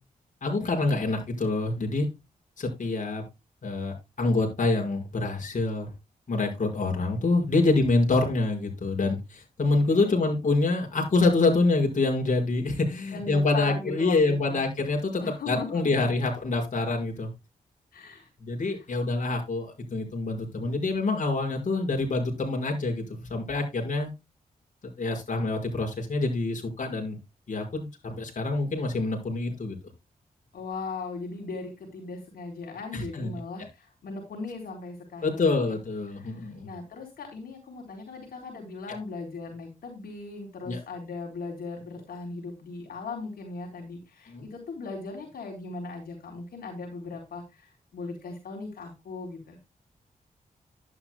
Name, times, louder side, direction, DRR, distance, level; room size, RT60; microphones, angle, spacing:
voice 1, 0.4-2.1 2.6-3.2 3.6-5.9 6.3-17.3 18.4-24.1 25.0-27.2 27.5-29.8 32.9-33.7 35.2-36.7 38.9-39.0 40.7-40.8 44.3-44.5, left 3 dB, 55° left, 2 dB, 5.5 m, -26 dB
voice 2, 9.9-10.3 13.1-14.6 15.2-16.3 17.9-18.3 18.7-18.9 30.5-35.7 36.1-49.6, left 3 dB, 85° left, 1 dB, 4.1 m, -38 dB
11.5 x 10.5 x 2.3 m, 0.23 s
cardioid pair, 80°, 15 cm